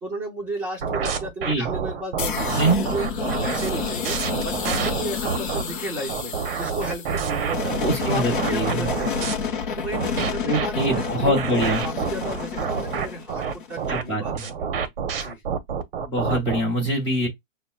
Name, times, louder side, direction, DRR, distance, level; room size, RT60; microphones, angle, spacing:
voice 1, 0.0-3.1 3.4-7.7 8.1-13.4 13.7-14.7 15.1-15.4, right 2 dB, 10° right, 0.7 m, -33 dB
sound 1, 0.8-5.6 6.1-9.3 9.9-16.6, right 6 dB, 45° right, 0.7 m, -28 dB
sound 2, 2.2-14.0, left 6 dB, 40° left, 0.6 m, -30 dB
voice 2, 2.5-2.8 7.8-8.9 10.4-11.8 13.9-14.5 16.1-17.3, right 1 dB, 10° left, 0.9 m, -24 dB
5.8 x 2.1 x 2.4 m
hypercardioid pair, 160°, 40 cm